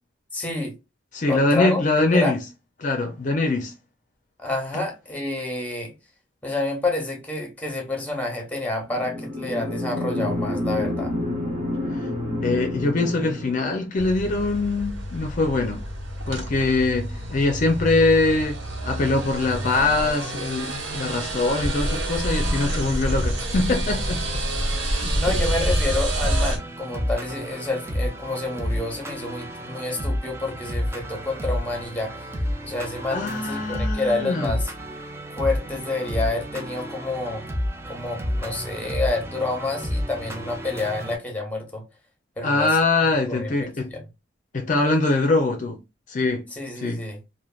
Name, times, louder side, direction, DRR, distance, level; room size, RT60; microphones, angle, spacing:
voice 1, 0.3-0.7 1.3-2.4 4.4-5.9 6.4-11.1 25.2-32.1 32.6-34.7 35.4-37.5 37.9-41.8 42.4-44.1 46.5-47.2, left 2 dB, 10° left, 0.8 m, -29 dB
voice 2, 1.1-2.4 2.8-3.7 11.9-12.1 12.4-15.8 16.3-18.6 18.8-24.2 24.9-25.4 33.1-34.6 42.4-43.9 44.5-45.8 46.1-46.4 46.8-47.0, left 2 dB, 45° left, 0.5 m, -23 dB
sound 1, 8.9-13.8, left 1 dB, 55° right, 1.2 m, -28 dB
sound 2, 14.0-26.6, right 1 dB, 90° right, 1.0 m, -27 dB
sound 3, 26.2-41.2, equal, 15° right, 0.4 m, -30 dB
3.2 x 2.2 x 2.3 m
head